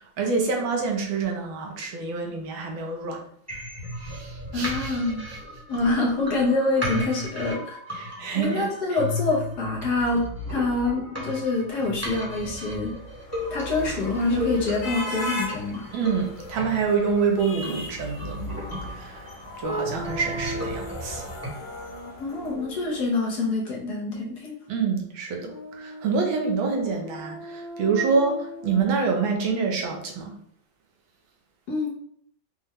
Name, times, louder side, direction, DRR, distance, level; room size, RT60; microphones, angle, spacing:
voice 1, 0.0-3.2 4.0-5.0 7.9-8.7 15.9-18.5 18.9-19.3 19.6-21.3 24.7-30.3, right 5 dB, 75° right, 2 dB, 1.5 m, -27 dB
sound 1, 3.5-21.5, left 1 dB, 10° right, 1.0 m, -35 dB
voice 2, 4.5-5.2 5.7-12.9 13.5-15.8 22.2-24.6 31.7-31.9, left 3 dB, 60° left, -2 dB, 1.2 m, -26 dB
sound 2, 12.7-23.0, equal, 85° left, 1.9 m, -38 dB
sound 3, 19.6-21.0 21.6-23.4 25.4-28.8, right 1 dB, 25° left, 1.0 m, -37 dB
5.4 x 2.2 x 3.5 m, 0.63 s
omnidirectional pair, 2.2 m